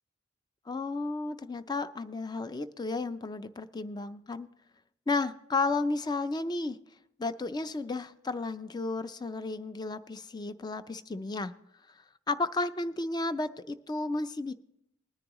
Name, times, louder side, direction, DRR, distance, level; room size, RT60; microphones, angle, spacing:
voice 1, 0.7-4.5 5.1-6.8 7.2-11.5 12.3-14.5, left 3 dB, 20° left, 13 dB, 0.4 m, -33 dB
20.0 x 9.8 x 3.0 m, 0.81 s
head